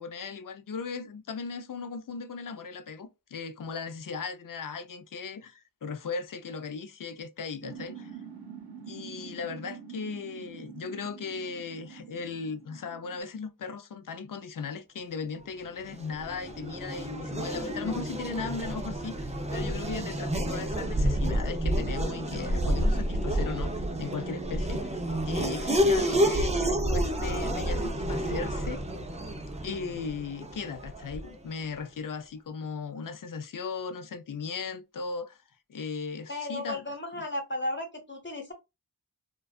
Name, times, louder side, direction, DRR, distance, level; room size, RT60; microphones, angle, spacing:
voice 1, 0.0-8.1 8.9-25.0 25.3-28.8 29.6-35.4 35.7-36.8, left 5 dB, 50° left, 0.4 m, -37 dB
sound 1, 7.6-13.2, right 7 dB, 65° right, 0.7 m, -46 dB
Race car auto racing / Accelerating revving vroom, 15.8-31.5, equal, 15° right, 0.4 m, -29 dB
voice 2, 36.3-38.5, left 1 dB, 25° left, 0.8 m, -34 dB
2.5 x 2.3 x 2.2 m
wide cardioid pair, 65°, 42 cm